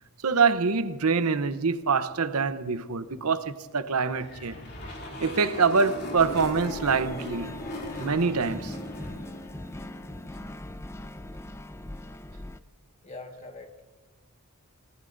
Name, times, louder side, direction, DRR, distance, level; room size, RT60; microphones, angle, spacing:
voice 1, 0.2-4.6 5.2-7.5 8.0-8.7, right 5 dB, 85° right, 0.9 m, -25 dB
sound 1, 4.0-10.5, equal, 45° left, 2.9 m, -39 dB
voice 2, 5.2-5.6 6.5-6.6 7.2-7.5 13.0-13.7, left 2 dB, 30° left, 1.6 m, -45 dB
sound 2, 6.1-12.6, left 1 dB, 10° left, 0.4 m, -41 dB
28.5 x 18.5 x 2.6 m
head